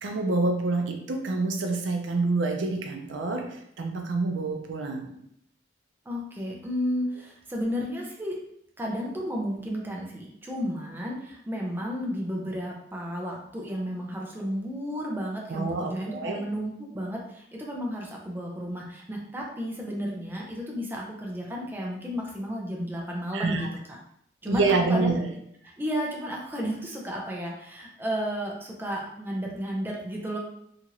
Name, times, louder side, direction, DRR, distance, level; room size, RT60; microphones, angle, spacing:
voice 1, 0.0-3.4 3.8-5.1 15.5-16.4 23.3-23.7 24.5-25.2, right 3 dB, 85° right, 3 dB, 0.5 m, -27 dB
voice 2, 6.1-8.4 8.8-23.7 24.4-24.6 24.9-25.2 25.8-30.4, equal, 10° right, -2 dB, 0.5 m, -32 dB
2.9 x 2.4 x 2.8 m, 0.72 s
head